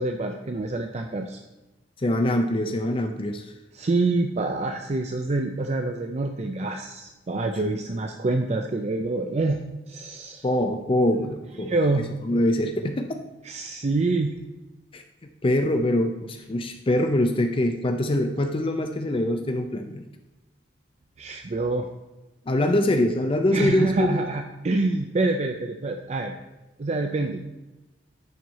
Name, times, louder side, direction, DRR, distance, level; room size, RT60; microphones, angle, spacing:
voice 1, 0.0-1.4 3.7-10.4 11.7-12.0 13.4-14.3 21.2-21.9 23.5-26.3 26.8-27.4, right 2 dB, 40° right, 5 dB, 0.5 m, -26 dB
voice 2, 2.0-3.5 7.6-7.7 10.4-11.8 12.2-13.1 14.9-15.0 15.4-20.1 22.5-24.2, left 1 dB, 30° left, 6 dB, 0.5 m, -24 dB
10.5 x 4.7 x 4.1 m, 1.1 s
head